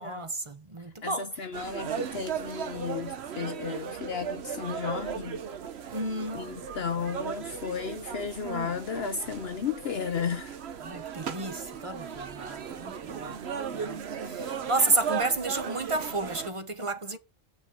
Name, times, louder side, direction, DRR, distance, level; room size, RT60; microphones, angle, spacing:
voice 1, 0.0-1.4 5.9-6.5 10.8-13.4 13.7-17.2, right 2 dB, 30° right, 0.8 m, -31 dB
voice 2, 1.0-5.4 6.3-10.6 16.8-16.9, left 6 dB, 60° left, 0.9 m, -34 dB
sound 1, 1.5-16.5, right 7 dB, 60° right, 1.1 m, -36 dB
8.7 x 5.3 x 4.9 m
omnidirectional pair, 1.3 m